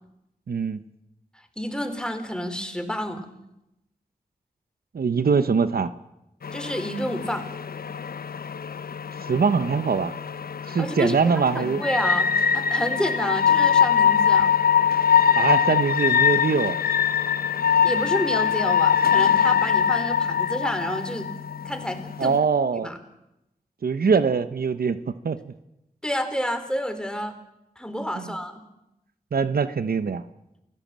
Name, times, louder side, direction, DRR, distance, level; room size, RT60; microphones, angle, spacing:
voice 1, 0.5-0.8 4.9-5.9 9.2-10.1 10.7-11.8 15.4-16.8 22.2-22.9 23.8-25.0 25.2-25.5 28.2-28.3 29.3-30.2, right 5 dB, 80° right, 12 dB, 0.9 m, -23 dB
voice 2, 1.6-3.3 6.5-7.5 10.6-14.5 17.8-21.3 21.6-22.4 22.8-23.0 26.0-27.3 27.8-28.6, equal, 5° left, 8 dB, 4.0 m, -29 dB
sound 1, 6.4-22.4, left 7 dB, 85° left, 0.7 m, -23 dB
29.0 x 16.5 x 7.5 m, 0.89 s
cardioid pair, 50°, 15 cm